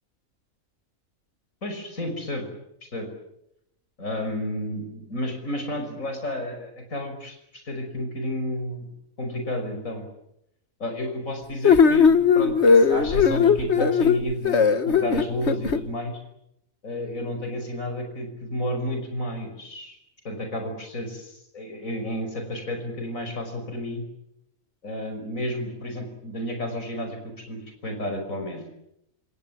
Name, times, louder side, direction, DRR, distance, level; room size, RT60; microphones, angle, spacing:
voice 1, 1.6-2.5 2.8-3.1 4.0-8.9 9.2-10.1 10.8-16.2 16.8-20.0 20.2-24.1 24.8-28.6, left 1 dB, 75° left, 5 dB, 6.1 m, -31 dB
sound 1, 11.6-15.8, left 6 dB, 55° left, 1.5 m, -18 dB
28.0 x 27.5 x 7.4 m, 0.81 s
omnidirectional pair, 1.4 m